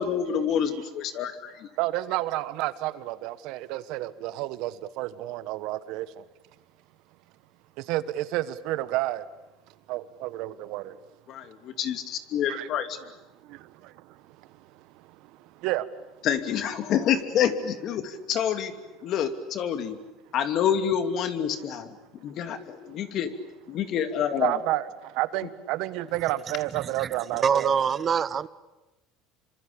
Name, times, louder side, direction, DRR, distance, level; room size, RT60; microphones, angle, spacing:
voice 1, 0.0-1.7 11.3-13.0 16.2-18.7 19.0-20.0 20.3-21.9 22.2-23.3 23.7-24.6, left 8 dB, 55° left, 2.7 m, -27 dB
voice 2, 1.8-6.2 7.8-9.2 9.9-11.0 12.5-12.7 13.4-15.9 24.4-27.8, right 16 dB, 70° right, 1.4 m, -31 dB
voice 3, 26.7-27.1 27.4-28.5, right 7 dB, 35° right, 1.0 m, -25 dB
27.0 x 25.5 x 8.7 m
supercardioid pair, 105°, 0 cm